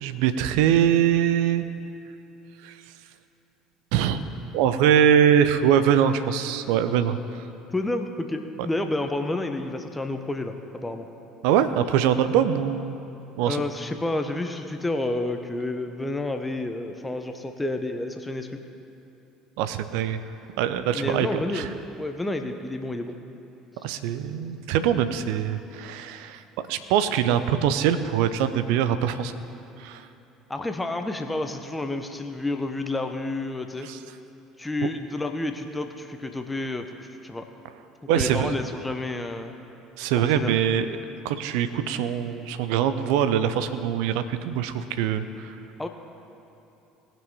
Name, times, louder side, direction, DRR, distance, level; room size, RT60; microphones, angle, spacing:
voice 1, 0.0-1.6 2.6-2.7 3.9-4.2 4.5-7.4 11.4-13.0 13.4-13.6 19.6-20.2 20.6-21.3 21.5-21.7 23.8-26.4 26.7-29.3 29.8-30.0 33.8-34.0 38.1-38.5 40.0-41.0 41.2-45.5, right 9 dB, 60° right, 11 dB, 0.6 m, -23 dB
voice 2, 7.7-11.1 13.5-18.5 20.9-23.1 30.5-33.9 34.6-36.9 37.2-37.4 38.1-39.5 40.2-40.6 45.8-45.9, left 2 dB, 10° left, 6 dB, 0.9 m, -30 dB
18.5 x 6.2 x 4.9 m, 2.9 s
figure-of-eight pair, 60°, 0 cm